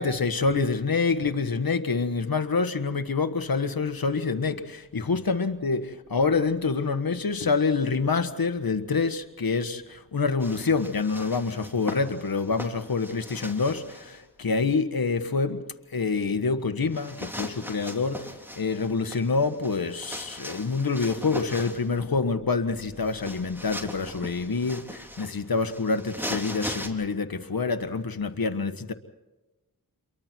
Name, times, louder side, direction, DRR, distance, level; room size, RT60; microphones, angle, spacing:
voice 1, 0.0-15.6 15.9-18.3 18.6-28.9, left 4 dB, 70° left, 1.6 m, -26 dB
Shirt Clothing Movement, 10.4-14.1 16.9-22.0 23.0-26.9, equal, 5° right, 3.5 m, -39 dB
29.0 x 23.0 x 4.6 m
cardioid pair, 40°, 37 cm